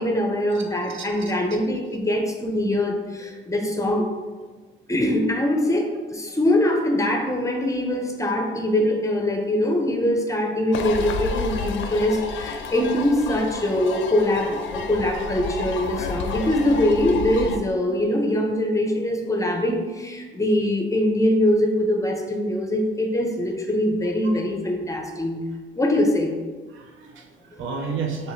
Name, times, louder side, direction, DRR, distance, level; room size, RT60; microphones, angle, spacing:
voice 1, 0.0-4.1 4.9-25.4 25.8-26.3, left 1 dB, 15° left, 2 dB, 0.6 m, -23 dB
voice 2, 0.9-1.3 6.3-6.4 26.7-28.3, right 5 dB, 75° right, 3 dB, 0.6 m, -32 dB
sound 1, 10.7-17.6, left 4 dB, 70° left, 0.4 m, -31 dB
4.7 x 3.1 x 2.6 m, 1.4 s
cardioid pair, 90°, 20 cm